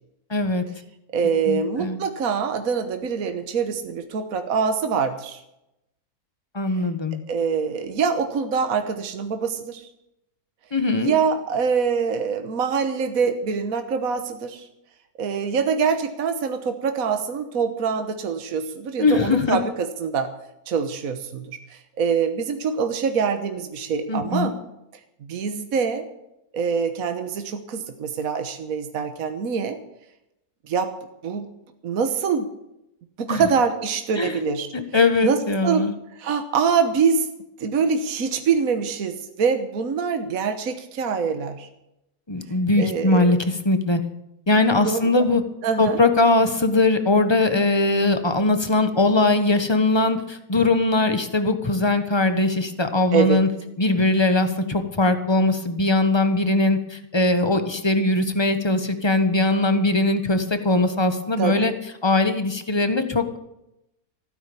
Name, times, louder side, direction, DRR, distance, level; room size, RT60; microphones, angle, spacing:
voice 1, 0.3-0.6 1.5-2.0 6.5-7.2 10.7-11.1 19.0-19.6 24.1-24.5 33.3-33.5 34.2-34.4 34.7-35.9 42.3-44.0 44.5-45.4 45.8-53.5 53.8-61.7 62.0-63.4, left 2 dB, 20° left, 8 dB, 1.2 m, -20 dB
voice 2, 1.1-5.4 7.3-9.9 11.0-14.7 15.2-20.3 20.7-24.6 25.2-26.0 26.5-29.8 30.7-30.9 31.2-31.5 31.8-32.5 33.2-34.7 35.2-35.9 36.2-37.3 37.6-41.7 42.8-43.4 44.8-45.2 45.6-46.0 53.1-53.4 61.4-61.7, right 6 dB, 65° right, 7 dB, 1.5 m, -24 dB
15.5 x 10.0 x 7.1 m, 0.86 s
omnidirectional pair, 1.6 m